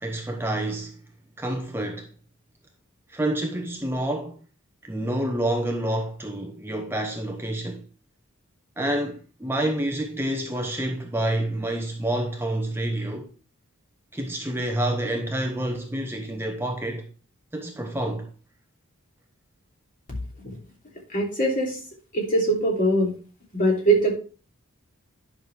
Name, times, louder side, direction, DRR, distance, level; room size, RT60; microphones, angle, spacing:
voice 1, 0.0-1.0 1.4-2.1 3.1-4.4 4.8-7.9 8.8-13.3 14.1-17.1 17.5-18.3, right 1 dB, 10° right, 0.9 m, -28 dB
voice 2, 21.1-21.8 22.1-23.1 23.5-24.1, right 1 dB, 40° left, 3.1 m, -22 dB
10.5 x 6.1 x 3.4 m
head